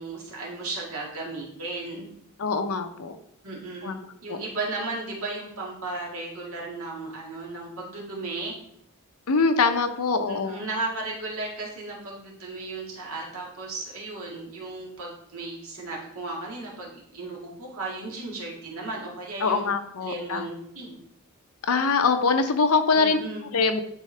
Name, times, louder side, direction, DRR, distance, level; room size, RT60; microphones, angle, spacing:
voice 1, 0.0-2.1 3.4-4.0 4.2-8.5 10.3-19.6 20.0-21.0 22.9-23.6, right 2 dB, 70° right, -2 dB, 1.9 m, -35 dB
voice 2, 2.4-3.2 3.8-4.0 4.3-4.4 9.3-10.6 19.4-20.4 21.6-23.2 23.5-23.8, left 4 dB, 75° left, 7 dB, 0.7 m, -23 dB
9.9 x 3.7 x 3.3 m, 0.69 s
head